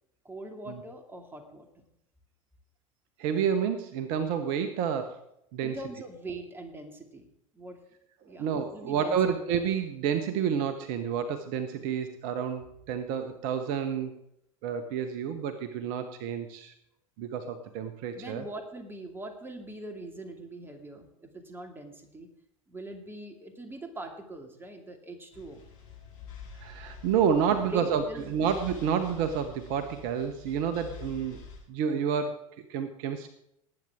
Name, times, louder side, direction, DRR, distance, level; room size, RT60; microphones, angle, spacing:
voice 1, 0.2-1.8 5.6-7.3 7.5-7.8 8.2-9.2 18.2-22.3 22.7-25.6 27.5-28.4, right 1 dB, 10° right, 4 dB, 2.5 m, -42 dB
voice 2, 3.2-5.2 5.5-5.8 8.4-14.1 14.6-16.7 17.2-18.4 26.6-28.0 28.3-31.4 31.7-32.4 32.7-33.3, right 7 dB, 55° right, 9 dB, 1.1 m, -29 dB
sound 1, 25.3-31.6, left 5 dB, 70° left, 5.1 m, -47 dB
19.5 x 8.9 x 3.7 m, 0.77 s
figure-of-eight pair, 80°, 18 cm